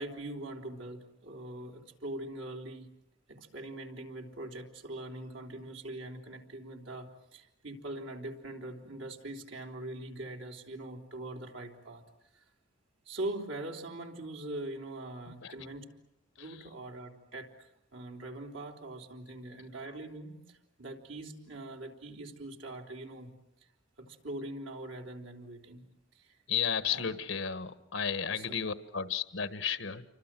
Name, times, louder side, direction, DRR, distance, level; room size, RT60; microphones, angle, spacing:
voice 1, 0.0-2.9 3.3-12.0 12.3-12.4 13.1-15.8 16.4-23.3 24.0-25.9 26.1-26.4 26.9-27.1 28.4-28.5, right 1 dB, 70° right, 2 dB, 3.6 m, -42 dB
voice 2, 26.5-30.0, left 7 dB, 75° left, 11 dB, 1.4 m, -33 dB
28.5 x 24.5 x 7.6 m, 0.86 s
head